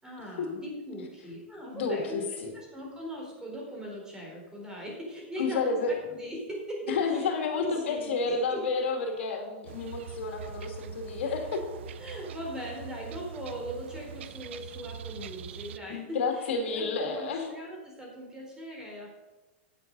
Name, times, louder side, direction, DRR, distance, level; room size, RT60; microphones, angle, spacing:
voice 1, 0.0-7.3 7.6-8.7 12.0-19.2, equal, 10° right, -2 dB, 3.9 m, -40 dB
voice 2, 1.7-2.5 5.4-5.9 6.9-11.6 15.9-17.4, left 4 dB, 75° left, 3 dB, 2.3 m, -30 dB
sound 1, 9.7-15.8, right 7 dB, 75° right, 0.6 m, -43 dB
9.6 x 8.0 x 5.4 m, 1.1 s
hypercardioid pair, 135°, 6 cm